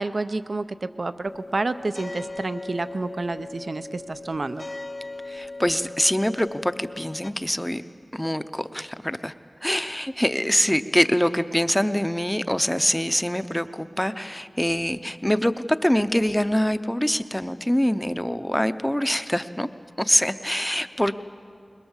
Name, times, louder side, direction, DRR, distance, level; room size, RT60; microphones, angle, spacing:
voice 1, 0.0-4.6, right 3 dB, 65° right, 11 dB, 0.6 m, -29 dB
sound 1, 1.2-7.3, left 2 dB, 50° left, 0.6 m, -38 dB
voice 2, 5.3-7.8 8.1-9.3 9.6-19.7 20.0-21.2, equal, 10° left, 11 dB, 0.7 m, -24 dB
21.5 x 21.5 x 7.3 m, 2.4 s
wide cardioid pair, 70°, 0 cm